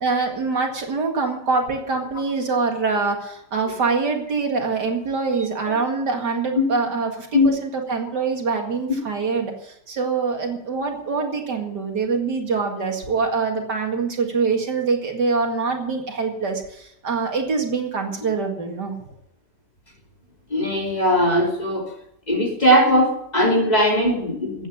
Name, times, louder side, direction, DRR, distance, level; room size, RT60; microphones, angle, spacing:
voice 1, 0.0-18.9, right 4 dB, 70° right, 2 dB, 2.7 m, -24 dB
voice 2, 20.5-21.9 22.3-24.7, equal, 20° left, -1 dB, 3.2 m, -19 dB
14.5 x 9.1 x 7.2 m, 0.75 s
omnidirectional pair, 1.9 m